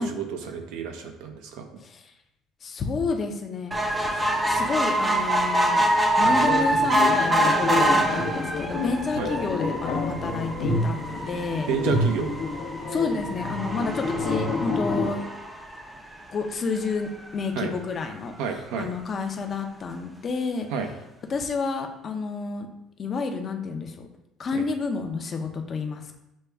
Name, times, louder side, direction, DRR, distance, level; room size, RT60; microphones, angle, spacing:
voice 1, 0.0-1.7 9.2-9.3 11.7-12.3 17.6-17.7 18.4-18.9 20.7-20.9 24.5-24.6, right 6 dB, 80° right, 5 dB, 0.6 m, -30 dB
voice 2, 1.8-2.1 2.6-3.7 4.1-5.9 6.2-11.7 12.9-15.3 16.3-18.3 18.8-20.7 21.3-22.7 23.0-24.1 24.4-26.2, left 4 dB, 35° left, 5 dB, 0.6 m, -30 dB
sound 1, 3.7-16.3 16.9-17.0 17.3-17.4 17.6-17.7, right 1 dB, 15° right, 0.5 m, -25 dB
sound 2, 6.2-15.1, left 2 dB, 75° left, 0.8 m, -29 dB
6.3 x 2.3 x 3.4 m, 0.87 s
cardioid pair, 130°, 0 cm